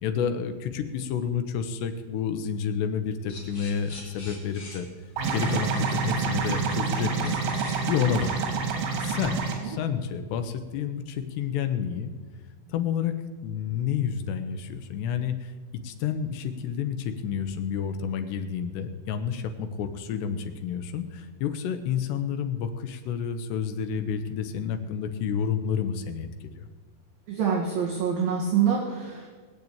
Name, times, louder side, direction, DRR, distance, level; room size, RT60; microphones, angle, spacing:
voice 1, 0.0-4.9 5.3-7.3 7.8-12.1 12.7-13.2 13.4-15.5 15.8-26.7, left 7 dB, 75° left, 8 dB, 2.7 m, -30 dB
sound 1, 3.3-9.4, left 2 dB, 30° left, 4.7 m, -46 dB
sound 2, 5.2-9.5, right 5 dB, 90° right, 4.8 m, -27 dB
voice 2, 27.3-29.3, right 7 dB, 55° right, -2 dB, 3.0 m, -26 dB
20.0 x 6.8 x 8.7 m, 1.4 s
omnidirectional pair, 5.6 m